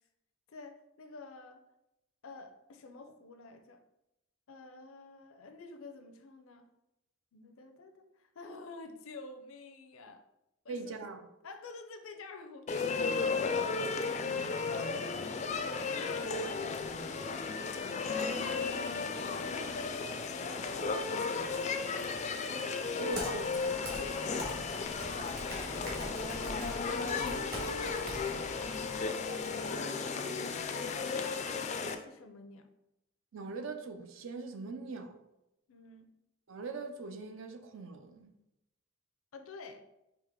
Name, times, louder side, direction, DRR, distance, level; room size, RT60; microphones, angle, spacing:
voice 1, 0.5-1.6 2.2-3.8 4.5-6.7 7.3-10.2 10.6-11.0 11.4-13.3 15.3-17.0 18.3-19.2 19.5-23.4 24.0-24.4 25.4-25.9 26.4-27.0 28.9-30.1 30.7-32.7 35.7-36.1 39.3-39.8, left 3 dB, 85° left, 0.5 m, -49 dB
voice 2, 10.7-11.2 14.2-14.5 23.0-23.6 33.3-35.1 36.5-38.3, right 3 dB, 75° right, 0.5 m, -41 dB
sound 1, 12.7-32.0, left 4 dB, 35° left, 0.3 m, -34 dB
Computer keyboard, 23.1-29.0, equal, 50° right, 1.5 m, -43 dB
4.8 x 2.8 x 3.7 m
head